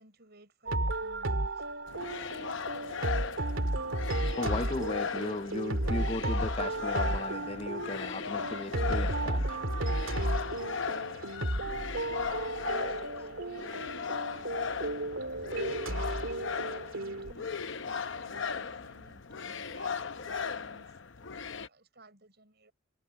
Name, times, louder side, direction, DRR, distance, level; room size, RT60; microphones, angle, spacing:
voice 1, 0.0-1.7 11.5-20.9 21.2-22.7, right 2 dB, 50° right, 6.9 m, -57 dB
sound 1, 0.7-17.3, right 1 dB, 65° right, 2.8 m, -33 dB
sound 2, 1.9-21.7, left 6 dB, 55° left, 0.8 m, -37 dB
voice 2, 4.2-9.6, left 2 dB, 25° left, 0.5 m, -36 dB
head